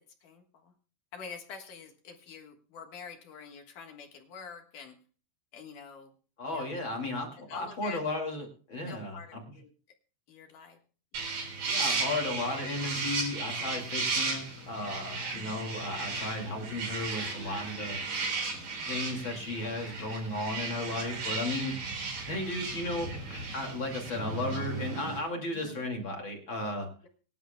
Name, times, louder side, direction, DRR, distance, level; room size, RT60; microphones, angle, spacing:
voice 1, 0.2-0.7 1.1-5.0 5.5-6.1 6.5-6.8 7.4-8.1 8.9-9.7 10.3-10.8 11.1-11.4 25.5-25.9, left 6 dB, 60° left, 4 dB, 2.4 m, -46 dB
voice 2, 6.4-9.4 11.7-18.0 18.9-21.8 22.3-26.9, left 2 dB, 35° left, 2 dB, 2.1 m, -35 dB
sound 1, 11.1-25.2, right 4 dB, 50° right, 5.5 m, -35 dB
25.5 x 11.0 x 2.2 m, 0.40 s
omnidirectional pair, 5.5 m